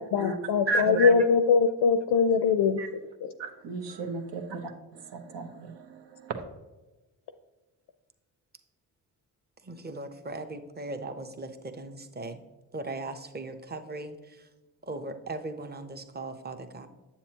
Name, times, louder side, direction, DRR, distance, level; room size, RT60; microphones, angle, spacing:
voice 1, 0.0-3.3, left 5 dB, 60° left, 9 dB, 0.6 m, -23 dB
voice 2, 0.7-1.1 2.8-2.9 3.4-6.4, right 3 dB, 65° right, 5 dB, 1.0 m, -33 dB
voice 3, 9.6-12.4 12.7-14.5 14.8-16.9, right 2 dB, 20° right, 7 dB, 0.8 m, -38 dB
7.5 x 7.1 x 2.9 m, 1.1 s
supercardioid pair, 50°, 46 cm